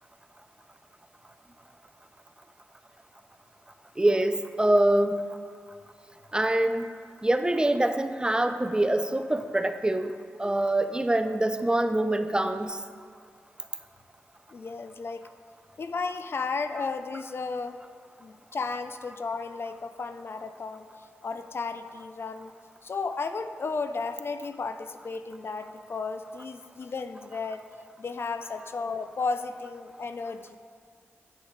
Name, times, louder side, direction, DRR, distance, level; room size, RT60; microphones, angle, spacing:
voice 1, 4.0-5.3 6.3-6.9 7.2-10.1 10.4-12.8 16.8-16.9, right 1 dB, 15° right, 9 dB, 0.5 m, -25 dB
voice 2, 14.5-15.2 15.8-17.8 18.2-20.9 21.2-22.5 22.8-27.7 28.0-30.6, left 4 dB, 50° left, 9 dB, 0.4 m, -34 dB
9.0 x 6.2 x 3.3 m, 2.1 s
cardioid pair, 50°, 5 cm